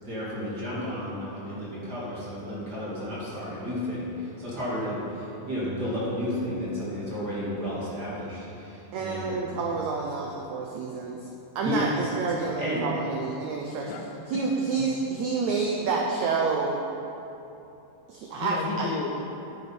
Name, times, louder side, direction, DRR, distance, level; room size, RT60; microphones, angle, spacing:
voice 1, 0.0-9.3 11.6-11.9 12.6-12.9, left 1 dB, 35° right, -8 dB, 2.0 m, -32 dB
voice 2, 8.9-11.3 11.5-13.9 14.3-16.8 18.1-18.9, right 4 dB, 85° right, 0 dB, 1.6 m, -28 dB
voice 3, 13.8-14.5 14.8-14.9 18.4-19.2, left 4 dB, 75° left, 3 dB, 2.2 m, -33 dB
10.0 x 10.0 x 4.4 m, 2.9 s
omnidirectional pair, 4.2 m